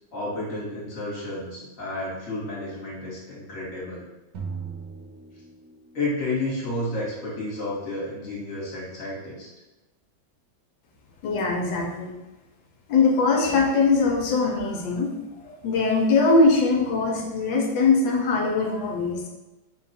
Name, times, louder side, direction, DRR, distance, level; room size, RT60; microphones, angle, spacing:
voice 1, 0.1-4.0 5.9-9.5, left 2 dB, 45° left, -6 dB, 1.5 m, -31 dB
sound 1, 4.3-6.1, right 5 dB, 65° right, 1.3 m, -37 dB
voice 2, 11.2-12.1 12.9-15.1 15.6-19.3, left 3 dB, 75° left, 0 dB, 1.3 m, -21 dB
3.9 x 2.3 x 4.1 m, 1.1 s
omnidirectional pair, 2.2 m